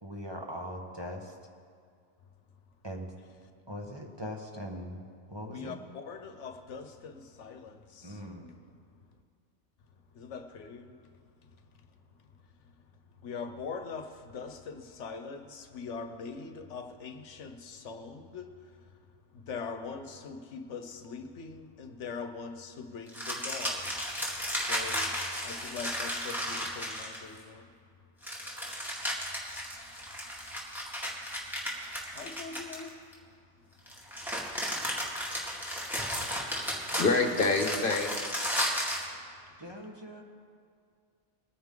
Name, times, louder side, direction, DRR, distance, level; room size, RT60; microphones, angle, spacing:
voice 1, 0.0-1.4 2.8-3.1 3.7-5.8 8.0-8.5 39.6-40.2, equal, 25° right, 0 dB, 1.2 m, -41 dB
voice 2, 5.5-8.2 10.1-11.0 13.2-18.5 19.3-23.9 24.5-25.1 25.4-27.7 32.1-32.9, left 5 dB, 80° left, 7 dB, 1.2 m, -42 dB
sound 1, 23.1-27.4 28.2-33.1 33.9-39.1, equal, ahead, 2.1 m, -34 dB
voice 3, 36.6-38.5, left 3 dB, 50° left, 4 dB, 1.2 m, -28 dB
22.0 x 9.5 x 3.8 m, 2.2 s
omnidirectional pair, 1.2 m